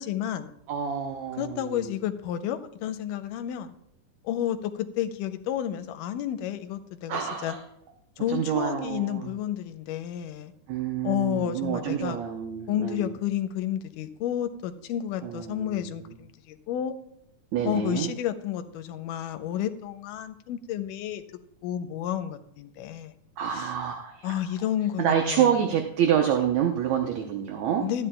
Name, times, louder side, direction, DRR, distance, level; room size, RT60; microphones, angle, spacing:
voice 1, 0.0-0.5 1.4-3.7 4.2-7.6 8.2-10.5 11.0-12.2 12.7-16.9 17.7-21.2 21.6-23.1 23.5-23.7 24.2-25.5 27.8-28.1, left 10 dB, 85° left, 9 dB, 2.2 m, -31 dB
voice 2, 0.7-1.9 7.1-7.6 8.3-9.3 10.7-13.1 15.2-16.2 17.5-18.1 23.4-24.4 25.0-27.8, right 9 dB, 70° right, 4 dB, 1.9 m, -27 dB
13.5 x 9.8 x 2.2 m, 0.76 s
omnidirectional pair, 3.8 m